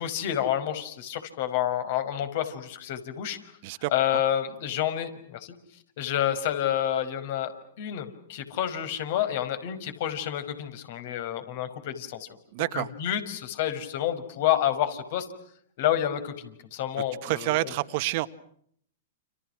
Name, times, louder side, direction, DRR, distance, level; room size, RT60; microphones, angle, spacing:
voice 1, 0.0-3.4 3.9-5.5 6.0-7.5 7.8-12.3 12.7-15.3 15.8-17.7, left 11 dB, 60° left, 5.6 m, -29 dB
voice 2, 12.5-12.9 17.2-18.3, right 19 dB, 55° right, 1.7 m, -28 dB
30.0 x 28.5 x 6.2 m
hypercardioid pair, 120°, 0 cm